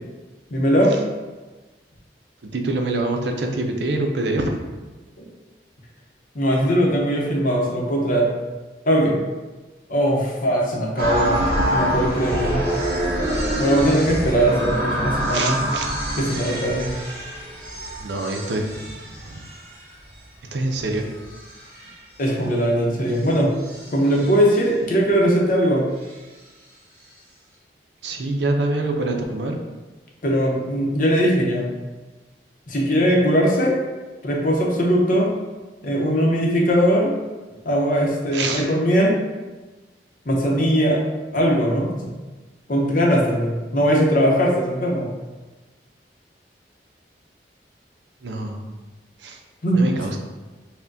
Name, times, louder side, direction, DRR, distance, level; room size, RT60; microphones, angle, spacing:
voice 1, 0.5-0.9 5.2-5.3 6.3-8.3 8.8-9.2 9.9-12.7 13.6-15.6 16.2-17.0 22.2-23.5 23.9-25.9 30.2-31.7 32.7-33.8 34.2-35.3 35.8-37.1 37.6-39.2 40.2-41.0 41.3-42.2 42.7-45.1 49.6-50.0, equal, 50° left, -2 dB, 0.7 m, -20 dB
voice 2, 2.4-4.6 15.3-15.9 18.0-18.7 19.2-19.4 20.5-21.0 28.0-29.6 38.3-38.7 48.2-48.6 49.2-49.4 49.7-50.2, right 2 dB, 80° right, 3 dB, 0.5 m, -25 dB
sound 1, 11.0-20.1 20.7-22.0 23.2-23.3 23.6-24.5, right 1 dB, 60° right, 1.5 m, -26 dB
5.6 x 2.1 x 2.6 m, 1.2 s
head